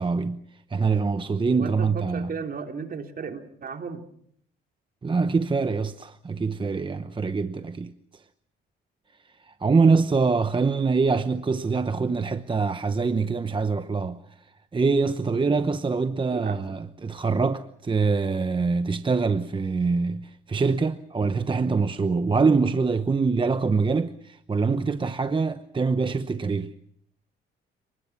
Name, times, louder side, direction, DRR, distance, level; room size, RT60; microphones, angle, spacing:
voice 1, 0.0-2.3 5.0-8.2 9.4-26.8, right 4 dB, 25° right, 0.9 m, -24 dB
voice 2, 1.5-4.0 16.3-16.8, right 5 dB, 50° right, 3.3 m, -35 dB
30.0 x 20.5 x 6.0 m
cardioid pair, 90°, 20 cm